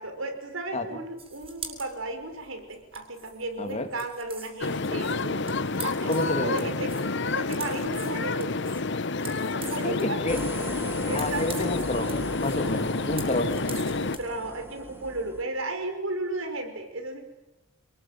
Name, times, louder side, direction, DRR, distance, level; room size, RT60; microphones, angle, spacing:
voice 1, 0.0-5.6 5.8-8.5 9.5-10.4 11.0-11.7 14.0-17.2, right 2 dB, 80° right, 6 dB, 5.5 m, -34 dB
sound 1, 1.2-14.4, right 5 dB, 30° right, 6.3 m, -44 dB
voice 2, 3.6-3.9 6.1-6.7 9.8-10.4 11.1-12.1 12.4-13.5, left 1 dB, 35° left, 7 dB, 2.6 m, -29 dB
sound 2, 4.6-14.2, left 3 dB, 60° left, 1.1 m, -29 dB
sound 3, 10.3-15.4, right 1 dB, 10° right, 2.2 m, -40 dB
29.5 x 20.5 x 9.4 m, 0.94 s
head